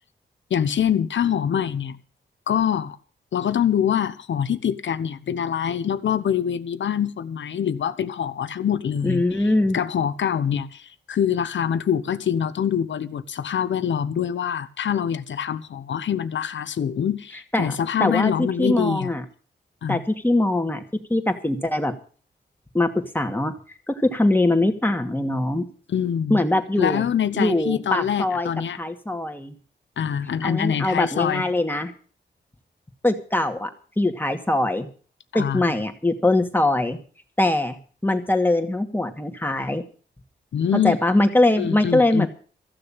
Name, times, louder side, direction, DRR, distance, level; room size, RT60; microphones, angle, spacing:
voice 1, 0.5-2.0 2.5-3.0 3.3-9.5 9.7-19.1 19.8-20.0 25.9-26.4 26.8-28.8 30.0-31.4 35.3-35.6 40.5-41.0 41.6-42.3, left 8 dB, 85° left, 1.0 m, -24 dB
voice 2, 9.0-9.8 17.5-19.2 19.9-20.8 21.1-21.9 22.7-23.5 23.9-25.6 26.3-27.1 27.3-28.5 28.8-29.6 30.4-31.9 33.0-33.7 34.0-34.9 35.3-37.0 37.4-39.8 40.8-42.3, left 2 dB, 10° left, 2.3 m, -22 dB
15.0 x 6.8 x 8.9 m
cardioid pair, 70°, 19 cm